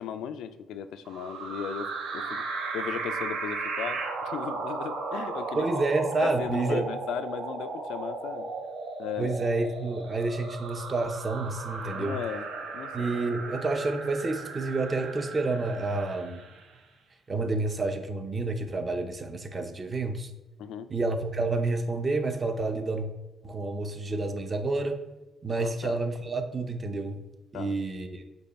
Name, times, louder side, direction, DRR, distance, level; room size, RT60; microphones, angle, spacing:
voice 1, 0.0-2.4 2.7-5.7 6.2-8.5 9.0-9.4 11.9-13.2 20.6-20.9 25.6-26.0 27.5-27.7, left 8 dB, 85° left, 12 dB, 0.3 m, -37 dB
sound 1, 1.1-16.7, right 4 dB, 80° right, 0.7 m, -36 dB
voice 2, 5.6-6.8 9.2-12.2 12.9-16.4 17.3-20.3 20.9-23.1 23.4-25.0 25.4-27.2 27.5-28.2, right 3 dB, 35° right, 7 dB, 0.6 m, -29 dB
5.3 x 2.3 x 4.0 m, 1.0 s
cardioid pair, 90°, 0 cm